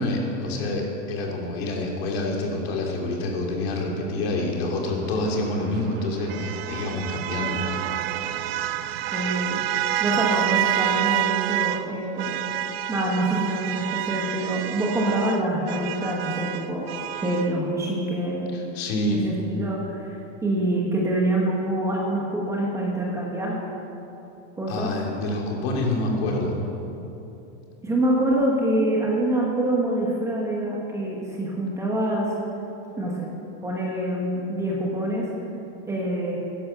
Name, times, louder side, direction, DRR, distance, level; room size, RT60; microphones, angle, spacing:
voice 1, 0.0-7.8 18.5-19.2 24.7-26.6, left 2 dB, 60° left, 0 dB, 2.8 m, -27 dB
sound 1, 5.2-11.9 12.2-17.5, right 13 dB, 60° right, 0.6 m, -28 dB
voice 2, 9.1-9.6 10.0-12.4 12.9-16.9 17.2-18.5 19.1-23.6 24.6-24.9 27.8-32.3 33.0-33.3 33.6-35.3 35.9-36.3, right 1 dB, 10° right, -3 dB, 1.2 m, -25 dB
11.5 x 10.5 x 7.0 m, 2.9 s
supercardioid pair, 175°, 35 cm